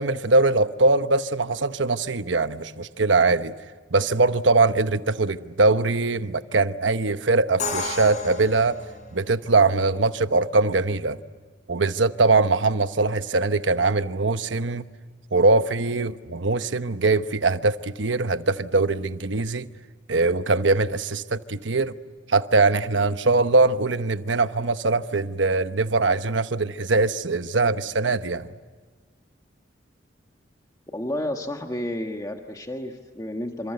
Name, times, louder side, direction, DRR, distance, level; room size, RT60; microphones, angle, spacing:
voice 1, 0.0-3.5 3.9-8.8 9.1-11.2 11.7-14.8 15.3-19.7 20.1-21.9 22.3-28.5, right 3 dB, 80° right, 1.0 m, -22 dB
Crash cymbal, 7.6-9.5, left 3 dB, 40° left, 4.3 m, -32 dB
voice 2, 30.9-33.7, left 1 dB, 20° left, 1.5 m, -31 dB
28.5 x 26.0 x 7.9 m
head